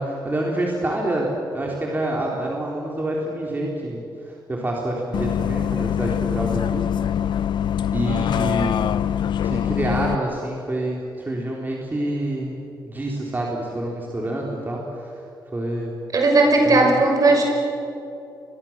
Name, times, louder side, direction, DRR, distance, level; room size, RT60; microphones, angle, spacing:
voice 1, 0.0-6.8 7.9-8.9 9.4-12.6 12.8-15.2 15.5-15.9 16.6-16.9, right 1 dB, 25° right, -2 dB, 3.7 m, -27 dB
Bus, 5.1-10.2, left 9 dB, 80° left, 0.6 m, -23 dB
voice 2, 16.1-17.4, right 2 dB, 50° right, 2 dB, 6.3 m, -16 dB
29.0 x 23.5 x 7.4 m, 2.7 s
wide cardioid pair, 120°, 8 cm